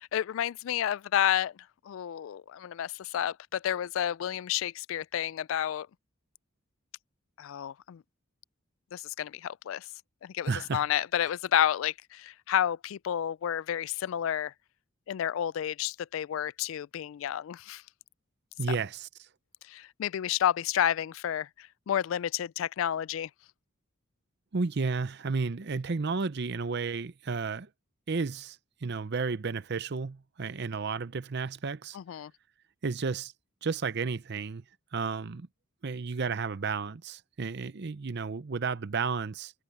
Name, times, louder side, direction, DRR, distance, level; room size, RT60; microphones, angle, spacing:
voice 1, 0.0-5.9 7.4-8.0 8.9-9.9 10.2-14.5 15.1-17.8 18.7-18.8 19.7-23.3 31.9-32.3, left 10 dB, 70° left, 0.3 m, -30 dB
voice 2, 10.5-10.8 18.6-19.3 24.5-27.7 28.1-32.2 32.8-33.3 33.6-34.6 34.9-35.5 35.8-39.5, right 4 dB, 55° right, 0.6 m, -32 dB
head